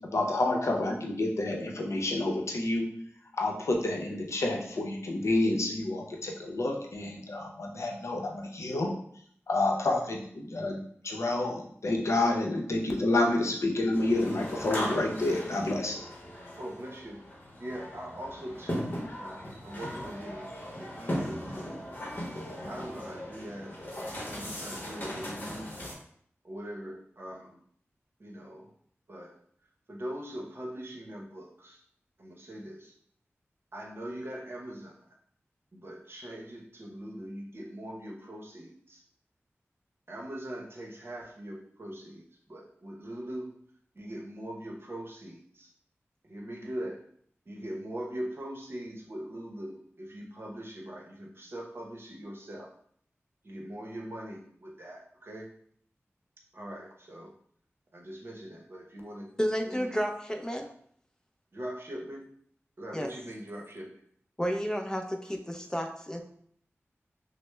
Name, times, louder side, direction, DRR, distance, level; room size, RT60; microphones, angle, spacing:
voice 1, 0.1-2.8 3.4-8.9 9.5-10.8 11.0-16.0, left 2 dB, 80° left, 0 dB, 0.6 m, -29 dB
sound 1, 13.9-25.9, equal, 40° left, 0.9 m, -38 dB
voice 2, 16.6-17.2 17.6-20.5 20.8-22.0 22.7-23.7 24.3-25.8 26.4-27.6 28.2-28.7 29.1-29.4 29.9-31.8 32.2-32.9 33.7-35.1 35.7-39.0 40.1-43.5 43.9-45.7 46.2-47.0 47.5-52.7 53.4-55.5 56.5-57.3 57.9-59.3 59.6-59.9 61.5-62.2 62.8-64.0, right 1 dB, 55° right, -1 dB, 0.7 m, -41 dB
voice 3, 59.4-60.7 62.9-63.1 64.4-66.2, equal, 15° left, 4 dB, 0.5 m, -31 dB
6.0 x 2.0 x 2.2 m, 0.63 s
wide cardioid pair, 70°, 5 cm